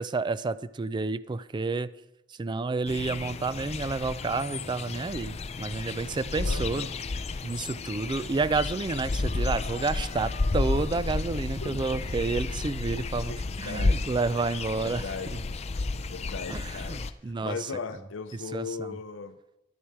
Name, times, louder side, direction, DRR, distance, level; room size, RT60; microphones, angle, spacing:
voice 1, 0.0-1.9 2.4-6.9 7.4-15.0 16.5-17.0 17.2-17.6 18.5-19.0, right 3 dB, 25° right, 15 dB, 0.4 m, -30 dB
sound 1, 2.9-17.1, left 3 dB, 35° left, 0.5 m, -32 dB
voice 2, 6.4-7.0 11.6-11.8 13.0-14.2 14.8-15.4 16.1-19.4, left 4 dB, 85° left, 10 dB, 0.6 m, -39 dB
11.0 x 10.5 x 4.7 m, 0.93 s
head